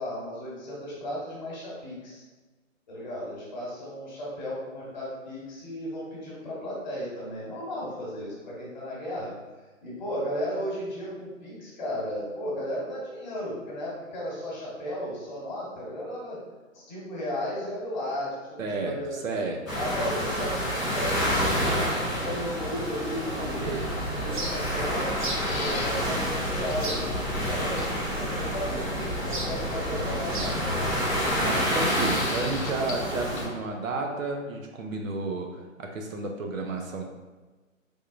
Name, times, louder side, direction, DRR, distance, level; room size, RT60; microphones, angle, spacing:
voice 1, 0.0-2.2 2.9-9.3 9.8-16.4 16.7-19.5 19.8-23.7 24.2-31.0, equal, 35° left, -5 dB, 1.2 m, -35 dB
voice 2, 18.6-19.6 23.4-24.0 31.2-37.0, right 3 dB, 80° right, 2 dB, 0.8 m, -32 dB
sound 1, 19.7-33.4, equal, ahead, 0.4 m, -29 dB
sound 2, 23.2-31.4, right 1 dB, 40° right, 0.6 m, -36 dB
sound 3, 25.3-26.0 26.3-26.4 26.7-26.8 27.8-28.2 29.4-30.0 31.5-33.1 33.4-33.5, left 4 dB, 90° left, 0.7 m, -39 dB
3.6 x 3.3 x 2.5 m, 1.2 s
hypercardioid pair, 155°, 40 cm